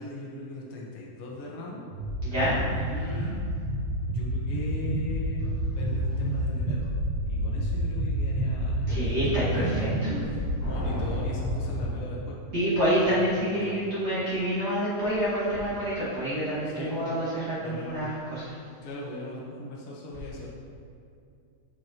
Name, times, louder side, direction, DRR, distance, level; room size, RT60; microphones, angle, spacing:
voice 1, 0.0-1.8 2.7-3.3 4.0-6.9 7.2-12.4 13.0-13.9 16.6-17.2 17.6-18.1 18.8-20.5, left 2 dB, 75° left, -4 dB, 1.2 m, -39 dB
sound 1, 1.9-11.8, right 1 dB, 60° right, 1.5 m, -29 dB
voice 2, 2.2-2.6 2.9-3.0 8.9-10.1 12.5-18.6, equal, 40° right, -12 dB, 1.5 m, -28 dB
sound 2, 10.6-12.8, left 1 dB, 55° left, 2.8 m, -39 dB
7.9 x 7.4 x 3.0 m, 2.4 s
omnidirectional pair, 4.5 m